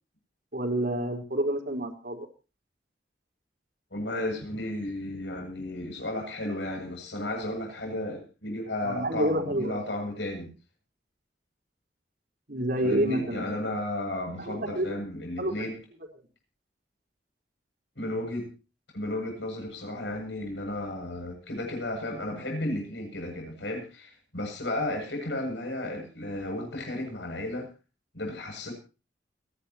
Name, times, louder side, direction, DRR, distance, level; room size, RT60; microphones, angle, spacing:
voice 1, 0.5-2.3 8.8-9.8 12.5-13.5 14.4-15.0 15.4-15.5, right 1 dB, 55° right, 2 dB, 4.6 m, -28 dB
voice 2, 3.9-10.5 12.8-15.7 18.0-18.5 18.9-27.7 28.1-28.7, left 1 dB, 85° left, 2 dB, 7.9 m, -33 dB
29.5 x 11.5 x 3.1 m, 0.34 s
head